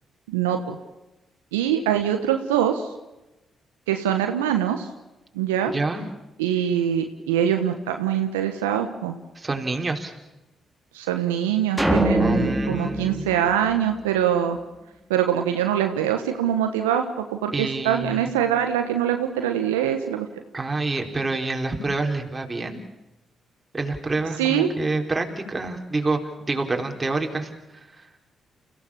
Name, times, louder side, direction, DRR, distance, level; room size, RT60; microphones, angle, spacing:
voice 1, 0.3-0.8 1.5-2.9 3.9-4.9 5.3-5.7 6.4-9.2 10.9-14.6 15.1-20.3 24.4-24.7, right 10 dB, 85° right, 6 dB, 1.2 m, -23 dB
voice 2, 5.7-6.0 9.4-10.1 12.1-13.3 17.5-18.3 20.5-22.8 23.7-26.2 26.5-28.1, right 3 dB, 30° right, 3 dB, 4.1 m, -27 dB
sound 1, 11.8-14.3, equal, 5° right, 4.0 m, -24 dB
29.5 x 16.5 x 7.2 m, 1.0 s
hypercardioid pair, 40°, 0 cm